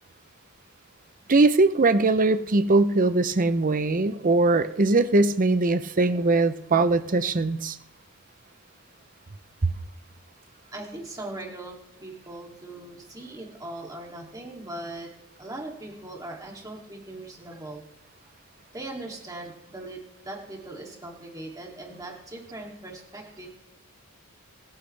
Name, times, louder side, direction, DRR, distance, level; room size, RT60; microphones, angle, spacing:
voice 1, 1.3-7.8 9.6-9.7, right 3 dB, 35° right, 11 dB, 0.7 m, -21 dB
voice 2, 10.7-15.1 15.4-17.8 18.7-23.5, right 2 dB, 15° right, -1 dB, 2.8 m, -40 dB
27.5 x 10.5 x 3.4 m, 0.86 s
head